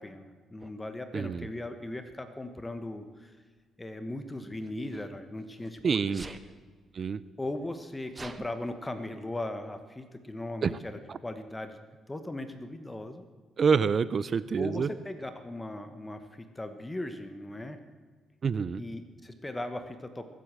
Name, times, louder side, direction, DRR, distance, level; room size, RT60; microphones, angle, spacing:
voice 1, 0.0-3.4 3.8-6.2 7.4-11.8 12.1-13.3 14.6-17.8 18.8-20.3, left 1 dB, 15° left, 8 dB, 1.2 m, -38 dB
Sneeze, 0.6-0.7 1.9-2.2 4.3-5.7 6.1-6.5 7.2-7.3 7.5-8.5, right 3 dB, 20° right, 1.1 m, -46 dB
voice 2, 1.1-1.5 5.8-6.2 6.9-7.2 10.6-10.7 11.1-11.2 13.6-14.9 18.4-18.8, right 6 dB, 45° right, 17 dB, 0.5 m, -27 dB
22.5 x 8.3 x 7.5 m, 1.5 s
cardioid pair, 90°, 0 cm